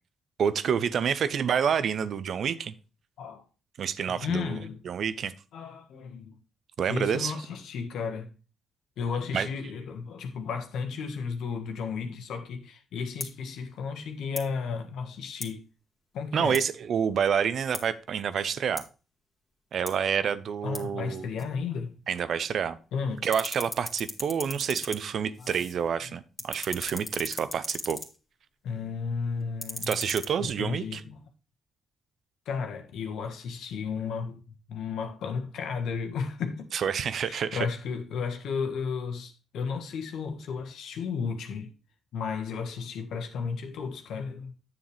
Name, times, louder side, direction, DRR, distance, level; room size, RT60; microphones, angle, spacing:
voice 1, 0.4-2.7 3.8-4.6 4.8-5.3 6.8-7.3 9.3-9.5 16.3-18.8 19.7-21.3 22.1-22.8 23.2-28.0 29.9-31.0 36.7-37.7, right 7 dB, 60° right, 0.7 m, -28 dB
voice 2, 4.1-4.8 5.5-6.4 6.9-8.3 9.0-15.6 16.1-16.6 20.6-22.0 22.9-23.2 25.4-25.6 26.0-26.1 28.6-30.0 30.4-31.3 32.4-36.7 37.1-41.7 42.1-44.5, left 5 dB, 70° left, 1.6 m, -34 dB
sound 1, 13.2-13.4 14.3-14.5 15.4-15.6 16.5-16.7 17.7-17.9 18.8-18.9 19.9-20.0 20.7-20.9 21.4-21.5 22.2-22.9 23.2-25.9 26.2-28.2 29.4-30.3, left 2 dB, 25° left, 2.0 m, -39 dB
9.8 x 7.2 x 3.4 m
hypercardioid pair, 45°, 0 cm